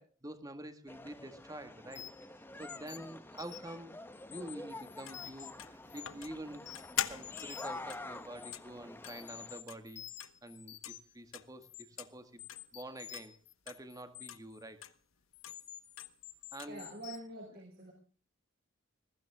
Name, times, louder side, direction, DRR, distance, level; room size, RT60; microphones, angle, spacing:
voice 1, 0.0-2.1 2.6-3.9 4.3-6.7 7.1-10.1 10.4-12.4 12.7-13.4 13.7-14.8 16.5-16.9, right 1 dB, 15° right, 9 dB, 1.8 m, -47 dB
sound 1, 0.9-9.6, left 2 dB, 10° left, 1.2 m, -48 dB
sound 2, 1.9-2.3 2.6-3.8 4.1-5.5 5.9-6.2 6.5-7.8 8.1-8.5 9.1-11.1 11.6-11.8 12.4-14.6 15.3-17.2, left 12 dB, 55° left, 2.7 m, -50 dB
sound 3, 5.1-10.5 10.8-11.0 11.3-11.5 12.0-12.1 12.5-12.7 13.1-13.3 13.7-13.8 14.3-14.4 14.8-15.0 15.4-15.6 16.0-16.1 16.6-16.8, left 11 dB, 80° left, 1.1 m, -43 dB
voice 2, 16.7-17.9, right 1 dB, 50° right, 0 dB, 5.5 m, -46 dB
21.0 x 15.5 x 3.6 m, 0.39 s
head